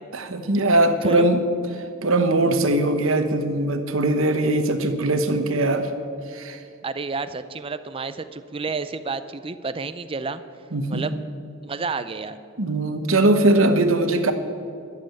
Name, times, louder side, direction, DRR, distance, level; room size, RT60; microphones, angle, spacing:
voice 1, 0.1-1.5 1.7-5.9 6.3-6.6 10.7-11.1 12.6-14.3, right 2 dB, 65° right, 8 dB, 1.1 m, -21 dB
voice 2, 6.8-10.4 10.9-11.1 11.6-12.4, right 4 dB, 25° right, 11 dB, 0.5 m, -30 dB
12.0 x 7.7 x 8.9 m, 2.4 s
head